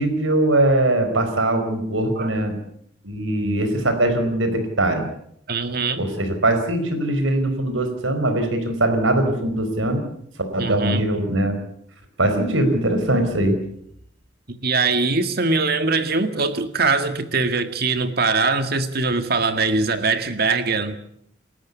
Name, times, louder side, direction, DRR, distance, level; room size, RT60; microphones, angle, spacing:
voice 1, 0.0-2.5 3.0-5.1 6.0-10.0 10.5-11.5 12.2-13.6, right 1 dB, 80° right, 4.7 m, -21 dB
voice 2, 5.5-6.1 10.6-11.0 14.6-21.0, right 3 dB, 50° right, 1.9 m, -22 dB
28.5 x 13.5 x 8.3 m
head